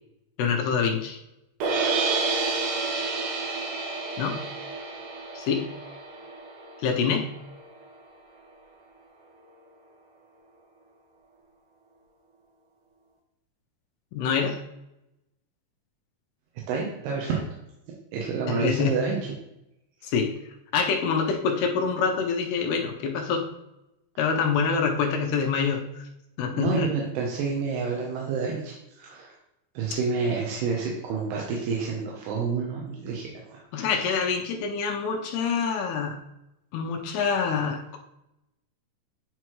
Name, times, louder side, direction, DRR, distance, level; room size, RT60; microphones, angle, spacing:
voice 1, 0.4-1.2 4.2-4.4 5.3-5.7 6.8-7.3 14.1-14.6 18.5-19.0 20.0-20.3 20.7-23.5 24.2-25.8 26.4-26.9 33.7-36.2 36.7-38.0, left 6 dB, 85° left, 2 dB, 2.8 m, -26 dB
sound 1, 1.6-7.8, right 3 dB, 70° right, 2.1 m, -30 dB
voice 2, 16.7-17.4 18.1-19.2 20.0-20.1 26.5-29.3 29.7-34.1, right 5 dB, 85° right, -2 dB, 3.0 m, -29 dB
10.0 x 4.7 x 3.1 m, 0.87 s
omnidirectional pair, 4.6 m